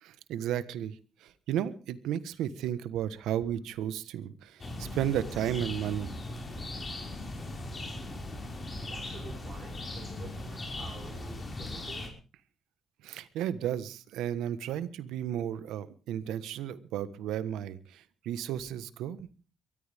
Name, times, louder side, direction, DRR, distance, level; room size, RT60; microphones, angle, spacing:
voice 1, 0.0-6.1 13.0-19.3, right 10 dB, 90° right, 13 dB, 1.3 m, -34 dB
sound 1, 4.6-12.1, left 2 dB, 30° left, 5.7 m, -39 dB
voice 2, 8.8-12.1, right 4 dB, 45° right, -2 dB, 5.7 m, -49 dB
23.0 x 14.0 x 3.6 m, 0.35 s
cardioid pair, 90°, 0 cm